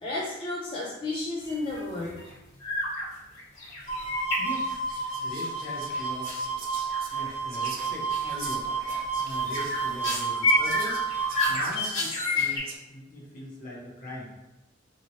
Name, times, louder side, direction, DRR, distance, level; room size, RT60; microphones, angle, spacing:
voice 1, 0.0-2.2, left 2 dB, 25° left, -5 dB, 0.4 m, -32 dB
sound 1, 1.4-1.8 2.1-2.3 2.6-3.1 3.4-5.1 6.2-6.4 6.9-7.3 7.6-7.8 8.1-8.4 8.8-12.6, left 2 dB, 60° left, 1.2 m, -30 dB
sound 2, 3.9-11.6, right 5 dB, 90° left, 1.2 m, -31 dB
Whispering, 4.1-4.2 4.6-12.8, right 4 dB, 50° right, 0.5 m, -44 dB
voice 2, 4.4-4.7 5.2-6.6 7.1-8.7 9.1-11.0 11.5-14.3, left 1 dB, 45° left, -4 dB, 0.9 m, -41 dB
2.8 x 2.8 x 2.7 m, 0.97 s
head